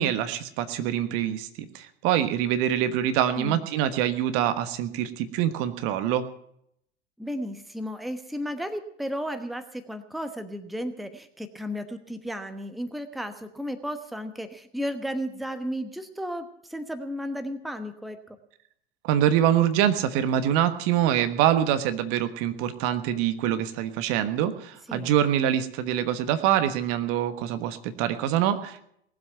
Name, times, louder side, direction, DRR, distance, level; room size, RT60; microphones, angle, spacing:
voice 1, 0.0-1.5 1.7-6.2 19.0-28.8, right 10 dB, 45° right, 10 dB, 1.4 m, -25 dB
voice 2, 3.3-3.7 7.2-18.2 24.9-25.1, equal, ahead, 9 dB, 1.1 m, -34 dB
19.0 x 7.8 x 9.0 m, 0.72 s
figure-of-eight pair, 90°, 32 cm